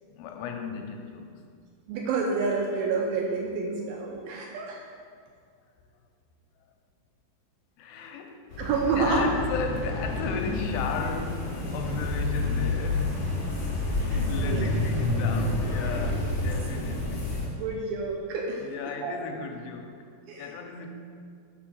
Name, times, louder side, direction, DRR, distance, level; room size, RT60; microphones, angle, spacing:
voice 1, 0.1-1.3 7.8-8.5 9.0-13.4 13.9-17.3 18.6-20.1 20.4-20.9, left 5 dB, 85° left, 4 dB, 2.6 m, -35 dB
voice 2, 1.9-4.8 8.6-9.3 14.1-14.6 17.6-18.6 19.0-19.1 20.3-20.5, right 4 dB, 85° right, -1 dB, 2.2 m, -28 dB
sound 1, 8.5-17.5, left 2 dB, 55° left, 1.6 m, -29 dB
5.9 x 3.7 x 6.1 m, 2.1 s
omnidirectional pair, 4.6 m